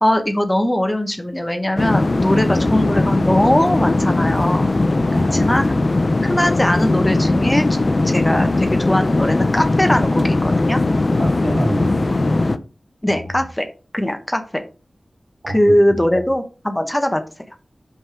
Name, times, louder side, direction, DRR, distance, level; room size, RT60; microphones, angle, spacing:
voice 1, 0.0-4.7 5.3-5.6 6.2-7.7 8.0-10.8 13.0-13.7 13.9-14.6 15.5-17.2, left 1 dB, 15° left, 7 dB, 0.7 m, -20 dB
sound 1, 1.8-12.6, left 2 dB, 40° left, 0.4 m, -19 dB
voice 2, 5.0-5.6 11.2-12.3 13.1-13.4 15.4-16.2, right 1 dB, 70° right, -1 dB, 2.6 m, -29 dB
5.4 x 3.6 x 4.8 m, 0.34 s
wide cardioid pair, 80°, 0 cm